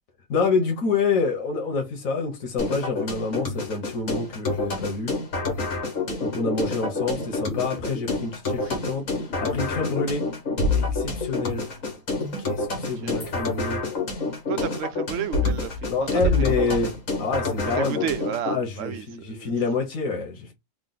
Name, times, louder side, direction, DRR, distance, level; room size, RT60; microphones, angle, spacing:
voice 1, 0.3-5.1 6.2-9.0 9.4-10.3 10.8-11.6 12.4-13.8 15.9-16.9 17.2-18.1 18.4-20.5, left 4 dB, 90° left, 1.4 m, -27 dB
sound 1, 2.6-18.6, left 3 dB, 75° left, 1.8 m, -28 dB
sound 2, 6.0-8.2 8.5-9.8 10.2-11.2 11.8-11.9, left 1 dB, 5° left, 0.7 m, -37 dB
voice 2, 12.8-13.2 14.5-15.7 16.0-16.8 17.6-19.6, right 8 dB, 70° right, 0.9 m, -32 dB
3.8 x 2.1 x 3.9 m
omnidirectional pair, 1.4 m